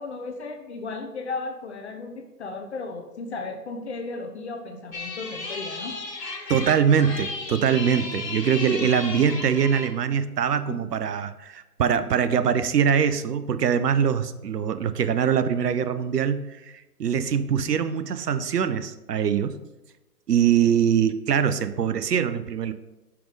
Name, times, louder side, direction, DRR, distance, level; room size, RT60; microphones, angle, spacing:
voice 1, 0.0-6.0 10.7-10.8 20.6-20.7, left 3 dB, 45° left, 5 dB, 0.7 m, -35 dB
sound 1, 4.9-9.9, left 3 dB, 90° left, 1.5 m, -34 dB
voice 2, 6.5-16.7 17.0-19.6 20.3-22.7, right 8 dB, 80° right, 12 dB, 0.7 m, -23 dB
6.0 x 5.3 x 4.8 m, 1.0 s
hypercardioid pair, 145°, 48 cm